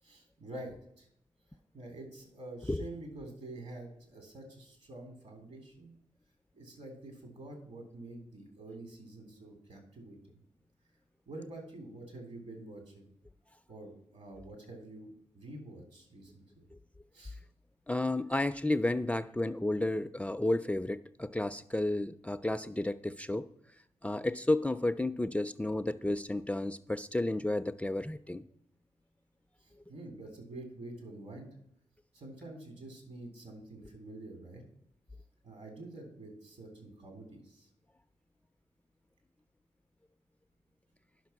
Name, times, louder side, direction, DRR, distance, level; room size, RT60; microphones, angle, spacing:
voice 1, 0.0-1.1 1.7-5.9 6.5-10.4 11.3-13.1 13.7-16.6 17.1-17.4 29.6-31.5 32.1-34.6 35.4-37.7, right 2 dB, 65° right, 4 dB, 3.5 m, -47 dB
voice 2, 17.9-23.5 24.0-28.4, left 1 dB, 10° left, 11 dB, 0.4 m, -32 dB
10.5 x 5.9 x 5.8 m, 0.73 s
cardioid pair, 60°, 12 cm